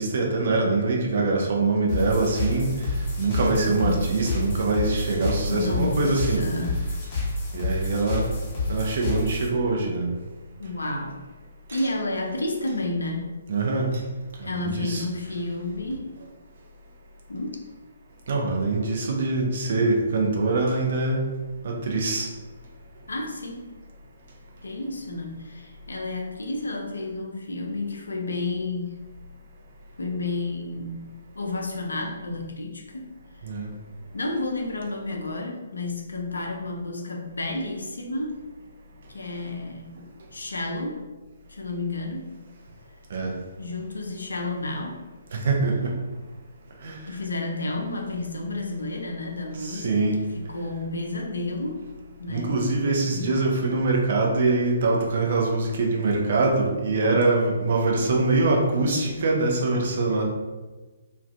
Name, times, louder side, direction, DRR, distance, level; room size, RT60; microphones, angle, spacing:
voice 1, 0.0-6.5 7.5-8.3 8.7-10.1 11.7-11.8 13.5-14.0 14.4-15.0 18.3-21.3 21.6-22.3 33.4-33.7 43.1-43.3 45.3-45.9 46.8-47.2 49.5-50.2 52.3-60.2, right 3 dB, 50° right, 0 dB, 0.5 m, -24 dB
sound 1, 1.9-9.5, left 2 dB, 30° left, 0.8 m, -29 dB
voice 2, 3.6-4.0 5.5-6.9 10.6-11.2 11.7-13.3 14.4-16.1 17.3-17.6 23.1-23.7 24.6-29.0 30.0-33.1 34.1-38.4 39.1-40.0 40.3-41.0 41.5-42.3 43.6-45.0 47.1-50.1 50.5-51.8 52.2-52.6 53.1-53.4, left 2 dB, 70° left, 1 dB, 0.4 m, -31 dB
2.4 x 2.2 x 2.4 m, 1.2 s
figure-of-eight pair, 130°, 0 cm